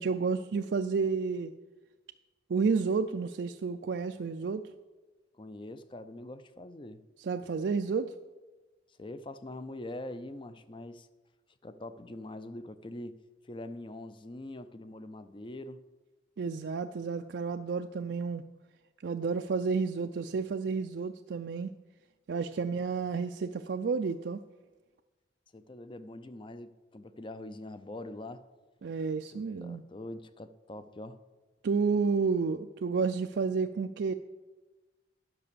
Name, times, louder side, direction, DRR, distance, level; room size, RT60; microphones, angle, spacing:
voice 1, 0.0-1.5 2.5-4.6 7.2-8.1 16.4-18.4 19.0-21.7 22.3-24.4 28.8-29.8 31.6-34.1, right 5 dB, 65° right, 6 dB, 0.4 m, -31 dB
voice 2, 5.4-7.0 9.0-11.1 11.6-13.2 13.5-15.8 25.5-28.4 29.3-31.2, left 1 dB, 25° left, 12 dB, 0.5 m, -43 dB
11.0 x 5.9 x 6.8 m, 1.2 s
head